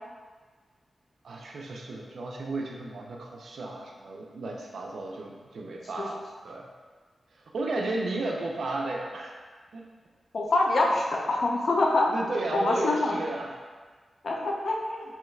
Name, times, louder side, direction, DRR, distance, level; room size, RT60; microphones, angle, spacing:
voice 1, 1.2-6.7 7.3-9.4 9.7-9.9 12.1-13.6 14.4-14.5, right 2 dB, 80° right, 0 dB, 0.4 m, -34 dB
voice 2, 10.3-12.1 12.5-13.2 14.2-15.0, left 2 dB, 65° left, -1 dB, 0.4 m, -25 dB
2.9 x 2.3 x 3.1 m, 1.4 s
wide cardioid pair, 140°, 0 cm